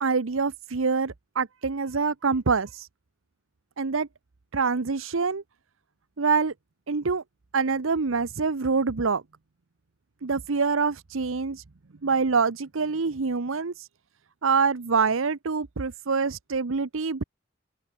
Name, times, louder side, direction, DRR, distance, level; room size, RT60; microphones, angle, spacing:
voice 1, 0.0-2.9 3.8-4.1 4.5-5.4 6.2-6.5 6.9-7.2 7.5-9.2 10.2-11.6 12.0-13.9 14.4-17.2, right 4 dB, 80° right, 0.8 m, -25 dB
open air
head